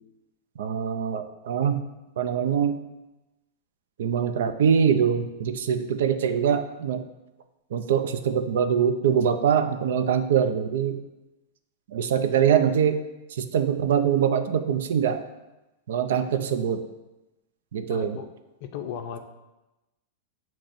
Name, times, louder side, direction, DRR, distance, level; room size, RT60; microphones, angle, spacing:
voice 1, 0.6-1.9 2.2-2.8 4.0-7.0 7.7-11.0 11.9-13.0 13.3-15.2 15.9-16.8 17.7-18.2, right 8 dB, 75° right, 9 dB, 0.4 m, -23 dB
voice 2, 17.9-18.3 18.6-19.2, left 8 dB, 50° left, 6 dB, 0.4 m, -35 dB
7.1 x 2.9 x 2.5 m, 1.0 s
supercardioid pair, 150°, 0 cm